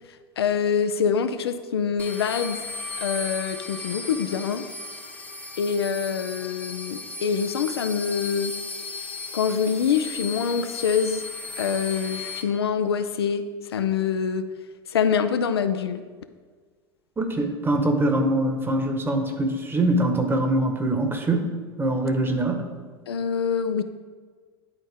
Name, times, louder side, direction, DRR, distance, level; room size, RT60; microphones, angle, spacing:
voice 1, 0.4-2.6 3.0-4.7 5.6-8.5 9.3-11.2 11.6-13.4 13.7-14.5 14.9-16.0 23.1-23.8, left 7 dB, 80° left, 9 dB, 0.4 m, -25 dB
sound 1, 2.0-12.4, left 3 dB, 10° left, 0.9 m, -36 dB
voice 2, 17.2-22.7, right 1 dB, 15° right, 4 dB, 1.1 m, -23 dB
10.5 x 4.1 x 3.5 m, 1.5 s
figure-of-eight pair, 80°, 13 cm